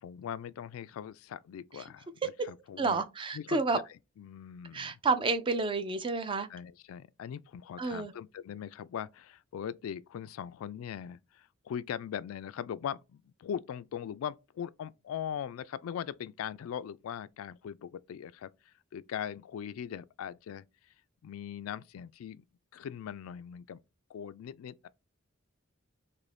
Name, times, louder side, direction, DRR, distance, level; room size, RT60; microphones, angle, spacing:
voice 1, 0.0-3.0 3.3-3.8 4.2-4.9 6.5-20.6 21.2-22.4 22.7-23.8 24.1-24.9, left 8 dB, 85° left, 0.3 m, -40 dB
voice 2, 2.8-3.8 4.7-6.5 7.8-8.1, right 3 dB, 25° right, 0.3 m, -30 dB
2.6 x 2.6 x 3.2 m
head